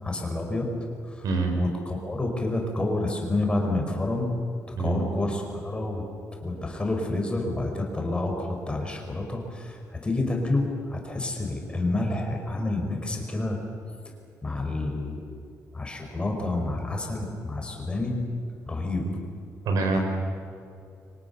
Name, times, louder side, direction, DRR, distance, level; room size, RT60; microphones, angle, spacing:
voice 1, 0.0-0.7 1.1-1.2 1.5-4.3 4.8-6.0 6.4-13.6 14.4-15.2 15.7-18.2 18.7-19.0, left 2 dB, 15° left, 2 dB, 4.8 m, -29 dB
voice 2, 1.2-1.6 4.8-5.1 19.6-20.0, right 3 dB, 85° right, 4 dB, 5.3 m, -25 dB
30.0 x 24.5 x 7.0 m, 2.5 s
cardioid pair, 145°, 6 cm